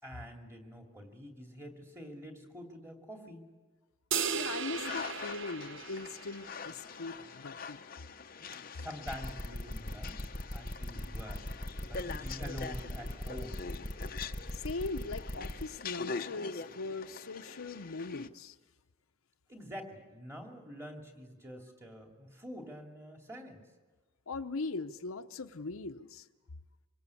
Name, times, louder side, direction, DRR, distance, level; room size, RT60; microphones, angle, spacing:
voice 1, 0.0-3.5 8.7-11.4 11.9-13.6 19.5-23.6, equal, 15° right, 2 dB, 2.7 m, -46 dB
sound 1, 4.1-6.7, right 7 dB, 60° right, 0.8 m, -36 dB
voice 2, 4.3-7.8 14.5-18.6 24.3-26.3, left 3 dB, 75° left, 8 dB, 0.8 m, -40 dB
sound 2, 4.7-18.3, left 5 dB, 40° left, 0.7 m, -44 dB
sound 3, 9.1-15.6, left 1 dB, 20° left, 1.2 m, -39 dB
25.5 x 21.0 x 8.4 m, 1.3 s
head